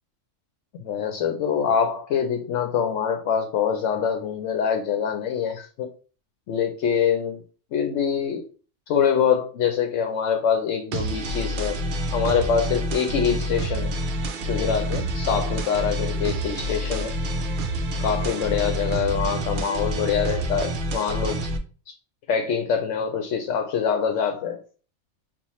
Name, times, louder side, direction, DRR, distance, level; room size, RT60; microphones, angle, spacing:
voice 1, 0.8-5.9 6.5-7.4 7.7-8.5 8.9-11.8 12.1-13.9 14.5-17.1 18.0-21.5 22.3-24.6, left 7 dB, 80° left, 5 dB, 0.9 m, -24 dB
sound 1, 10.9-21.6, right 1 dB, 55° right, 0.6 m, -28 dB
5.4 x 2.4 x 3.0 m, 0.38 s
omnidirectional pair, 1.3 m